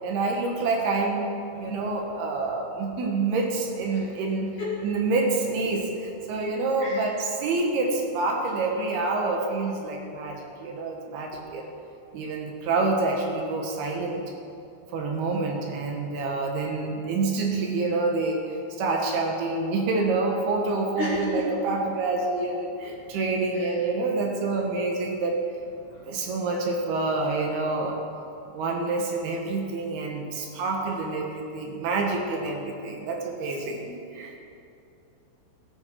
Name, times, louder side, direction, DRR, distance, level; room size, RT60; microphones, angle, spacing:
voice 1, 0.0-1.3 1.6-4.6 4.8-11.7 12.1-14.2 14.9-18.4 18.8-25.4 26.1-28.0 28.5-34.3, right 3 dB, 70° right, 1 dB, 3.1 m, -27 dB
voice 2, 21.0-21.4 23.6-23.7, left 2 dB, 70° left, -3 dB, 1.9 m, -31 dB
17.5 x 12.5 x 4.6 m, 2.6 s
omnidirectional pair, 5.2 m